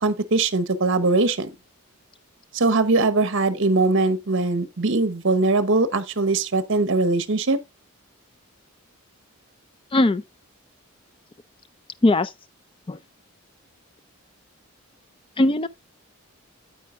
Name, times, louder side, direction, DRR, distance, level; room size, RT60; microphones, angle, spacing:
voice 1, 0.0-1.5 2.5-7.6, right 3 dB, 55° right, 0.8 m, -21 dB
voice 2, 9.9-10.2 12.0-12.3 12.9-13.0 15.4-15.7, left 2 dB, 25° left, 0.4 m, -19 dB
9.1 x 8.4 x 2.4 m
head